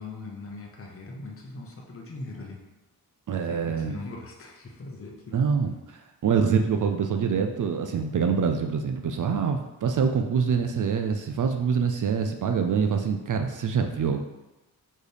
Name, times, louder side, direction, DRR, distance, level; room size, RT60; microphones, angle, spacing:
voice 1, 0.0-2.7 3.3-5.4, left 3 dB, 35° left, 1 dB, 0.7 m, -40 dB
voice 2, 3.3-4.0 5.3-14.2, right 6 dB, 55° right, 5 dB, 0.4 m, -25 dB
4.3 x 3.2 x 3.4 m, 1.0 s
cardioid pair, 65°, 38 cm